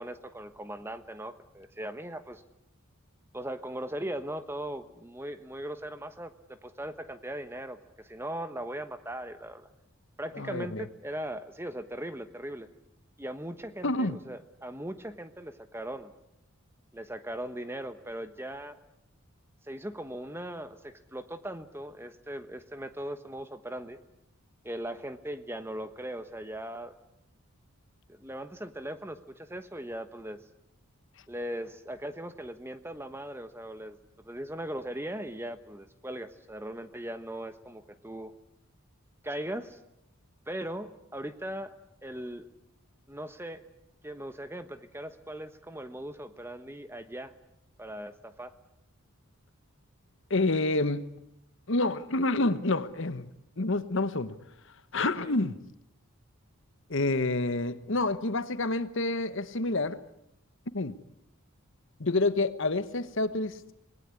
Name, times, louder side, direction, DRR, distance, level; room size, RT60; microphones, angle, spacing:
voice 1, 0.0-2.4 3.3-9.7 10.2-12.7 13.2-16.1 16.9-18.8 19.7-24.0 24.6-27.0 28.1-30.4 31.3-34.0 34.2-38.3 39.2-39.8 40.5-41.7 42.0-42.5 43.1-43.6 44.0-47.3 47.8-48.5 55.2-55.3, right 1 dB, 10° right, 1.1 m, -39 dB
voice 2, 10.3-10.8 13.8-14.1 50.3-51.1 51.7-53.3 53.6-54.3 54.9-55.6 56.9-60.0 60.7-61.0 62.0-63.7, left 2 dB, 55° left, 1.1 m, -28 dB
26.5 x 19.5 x 9.7 m
head